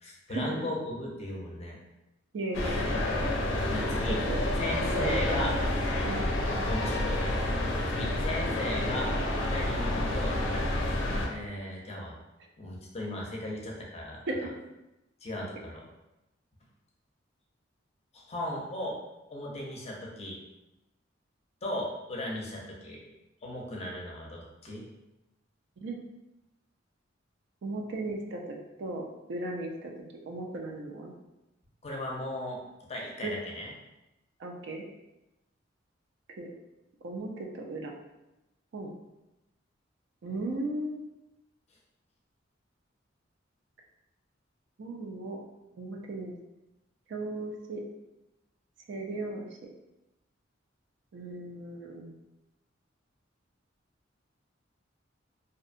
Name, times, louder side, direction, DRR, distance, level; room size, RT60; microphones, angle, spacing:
voice 1, 0.0-1.8 2.6-2.8 3.6-4.2 4.6-5.5 6.7-7.2 7.9-9.1 9.5-10.7 11.2-12.2 12.6-14.2 15.2-15.8 18.1-18.9 19.3-20.4 21.6-23.0 23.4-24.8 31.8-32.6 32.9-33.7, left 1 dB, 35° left, -2 dB, 0.5 m, -36 dB
voice 2, 2.3-2.9 4.1-4.4 4.9-5.4 6.0-6.2 14.3-14.4 25.8-26.0 27.6-29.9 30.3-31.1 33.2-33.3 34.4-34.8 36.4-36.5 37.0-37.9 38.7-38.9 40.2-41.0 44.8-45.4 45.8-46.3 47.1-47.8 48.9-49.5 51.1-52.2, right 2 dB, 65° right, 1 dB, 0.4 m, -36 dB
sound 1, 2.5-11.3, left 1 dB, 85° left, 0.4 m, -29 dB
2.6 x 2.1 x 2.5 m, 0.97 s
head